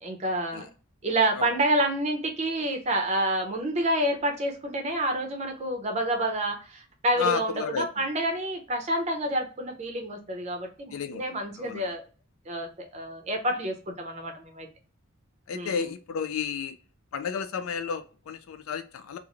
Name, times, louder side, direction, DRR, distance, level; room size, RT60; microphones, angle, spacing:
voice 1, 0.0-0.7 1.0-12.0 12.5-14.7 15.5-15.8, right 1 dB, 30° right, 0.6 m, -28 dB
voice 2, 7.2-7.9 10.9-11.2 11.6-11.8 15.5-16.7 17.1-19.2, left 6 dB, 75° left, 0.3 m, -31 dB
3.0 x 2.5 x 2.4 m
head